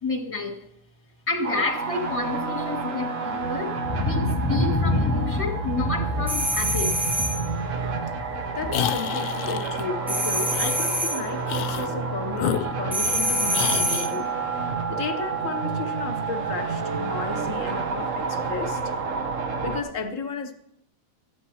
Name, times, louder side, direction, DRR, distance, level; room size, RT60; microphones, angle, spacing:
voice 1, 0.0-0.5 1.3-7.6, left 2 dB, 20° left, 1 dB, 1.9 m, -27 dB
sound 1, 1.4-19.8, right 4 dB, 55° right, 1.2 m, -29 dB
sound 2, 6.3-7.5 10.1-11.3 12.9-14.2, equal, ahead, 0.7 m, -26 dB
voice 2, 8.5-14.3 14.9-18.8 19.6-20.5, left 4 dB, 55° left, 6 dB, 1.3 m, -33 dB
sound 3, 8.7-9.9 10.5-10.8 11.4-11.9 12.3-13.2 13.5-14.1, left 10 dB, 80° left, 1.1 m, -29 dB
17.0 x 12.0 x 2.8 m, 0.78 s
omnidirectional pair, 1.7 m